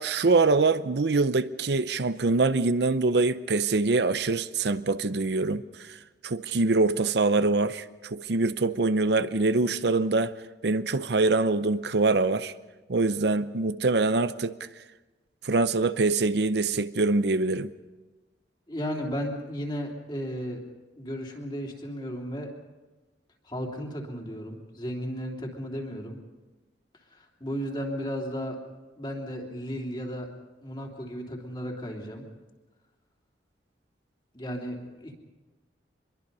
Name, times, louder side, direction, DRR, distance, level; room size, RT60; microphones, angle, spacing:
voice 1, 0.0-6.0 6.2-10.3 10.6-12.5 12.9-14.6 15.4-17.7, right 3 dB, 65° right, 0.7 m, -24 dB
voice 2, 18.7-20.6 21.0-22.5 23.4-26.2 27.1-28.6 29.0-30.3 30.6-32.3 34.3-35.1, equal, 25° left, 3.2 m, -34 dB
25.0 x 22.5 x 5.5 m
head